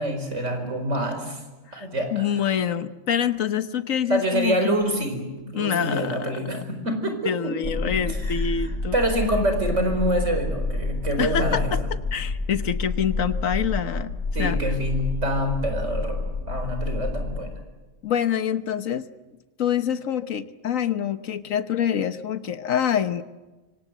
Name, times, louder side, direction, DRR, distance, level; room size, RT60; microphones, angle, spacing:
voice 1, 0.0-1.4 1.7-2.3 4.1-11.7 14.3-17.5, right 1 dB, 65° right, 6 dB, 5.0 m, -26 dB
voice 2, 1.7-4.8 5.5-6.6 7.2-9.0 11.2-11.8 12.1-14.1 14.4-14.6 18.0-19.1 19.6-23.2, left 8 dB, 85° left, 11 dB, 1.5 m, -26 dB
sound 1, 7.6-17.4, left 3 dB, 45° left, 3.4 m, -28 dB
25.5 x 25.5 x 8.1 m, 1.2 s
omnidirectional pair, 1.3 m